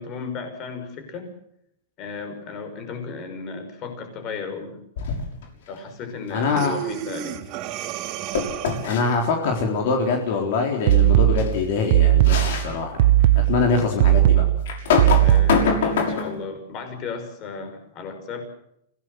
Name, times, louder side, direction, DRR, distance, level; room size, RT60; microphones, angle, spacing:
voice 1, 0.0-1.3 2.0-4.8 5.7-7.4 15.2-18.4, left 4 dB, 30° left, 8 dB, 5.5 m, -35 dB
sound 1, 5.0-5.5 8.3-9.0 10.9-11.0 11.4-11.5 12.2-12.7 13.3-13.4 14.7-16.4, left 5 dB, 70° left, 6.4 m, -23 dB
voice 2, 6.3-6.7 8.8-13.1 13.5-14.4, left 4 dB, 55° left, 2 dB, 4.0 m, -24 dB
Breathing, 6.6-9.1, right 10 dB, 35° right, 2.1 m, -32 dB
sound 2, 10.9-15.8, right 14 dB, 55° right, 0.9 m, -18 dB
25.5 x 17.5 x 7.9 m, 0.76 s
supercardioid pair, 160°, 0 cm